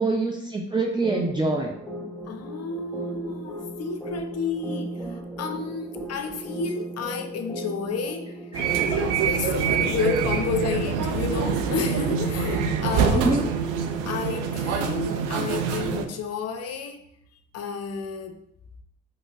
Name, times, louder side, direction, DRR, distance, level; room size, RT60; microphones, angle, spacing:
voice 1, 0.0-1.7 8.5-8.6 13.2-13.5, right 3 dB, 15° right, -1 dB, 0.5 m, -25 dB
sound 1, 1.0-10.3, right 1 dB, 5° left, 1.0 m, -36 dB
voice 2, 2.3-8.4 9.2-13.4 14.1-17.0 17.5-18.4, left 5 dB, 55° left, 6 dB, 0.6 m, -31 dB
sound 2, 8.5-16.1, right 6 dB, 75° right, 0.5 m, -25 dB
5.0 x 2.0 x 2.5 m, 0.74 s
hypercardioid pair, 45°, 31 cm